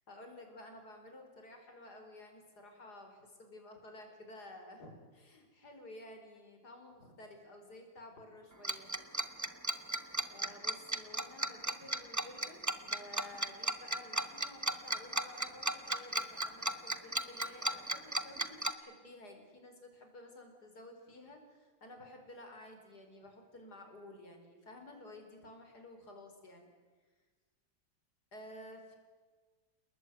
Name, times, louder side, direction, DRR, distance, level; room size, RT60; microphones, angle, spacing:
voice 1, 0.1-8.9 10.3-26.7 28.3-29.0, left 1 dB, 50° left, 4 dB, 5.3 m, -53 dB
Tick-tock, 8.6-18.7, right 1 dB, 15° right, 0.8 m, -34 dB
30.0 x 20.0 x 9.5 m, 1.4 s
omnidirectional pair, 2.1 m